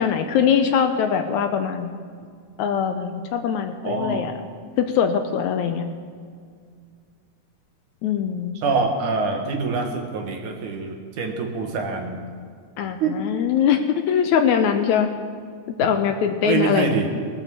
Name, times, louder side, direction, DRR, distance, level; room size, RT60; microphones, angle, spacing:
voice 1, 0.0-1.9 2.6-4.3 4.8-5.9 8.0-8.5 12.8-15.1 15.8-17.0, left 7 dB, 80° left, 7 dB, 1.8 m, -22 dB
voice 2, 3.8-4.3 8.6-12.2 13.0-13.1 16.4-17.1, right 4 dB, 70° right, 3 dB, 2.8 m, -25 dB
19.5 x 7.3 x 6.8 m, 2.1 s
omnidirectional pair, 3.8 m